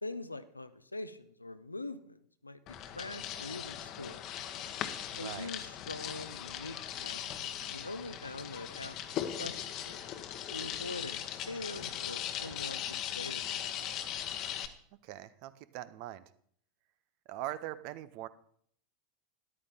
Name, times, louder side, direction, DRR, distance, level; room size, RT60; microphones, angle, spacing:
voice 1, 0.0-4.2 5.1-9.6 9.8-10.2 10.5-13.7, left 2 dB, 85° left, 13 dB, 0.6 m, -44 dB
sound 1, 2.7-14.7, left 10 dB, 40° left, 1.0 m, -39 dB
voice 2, 5.1-5.5 15.0-16.2 17.3-18.3, right 14 dB, 50° right, 16 dB, 0.7 m, -41 dB
13.0 x 11.0 x 3.7 m, 0.62 s
figure-of-eight pair, 80°, 0 cm